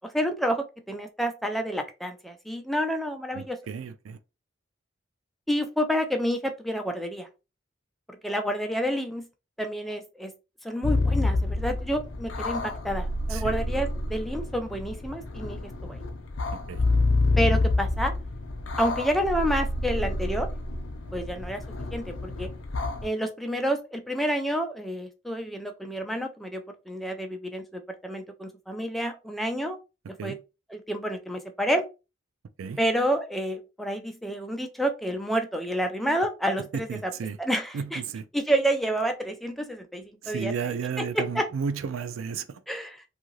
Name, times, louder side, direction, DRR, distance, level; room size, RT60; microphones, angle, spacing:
voice 1, 0.0-3.6 5.5-7.3 8.1-9.3 9.6-10.3 10.6-16.0 17.4-18.1 18.8-20.5 21.1-21.6 21.9-22.5 23.0-29.8 30.2-30.4 30.7-31.8 32.8-37.1 37.4-38.0 38.3-41.5 42.7-43.0, equal, ahead, 0.3 m, -29 dB
voice 2, 3.3-4.2 13.3-13.5 16.7-16.8 30.2-30.4 32.6-32.8 36.9-37.4 37.7-38.2 40.2-42.6, right 6 dB, 90° right, 0.4 m, -33 dB
sound 1, 10.8-23.1, left 2 dB, 80° left, 0.6 m, -28 dB
2.7 x 2.5 x 3.1 m
head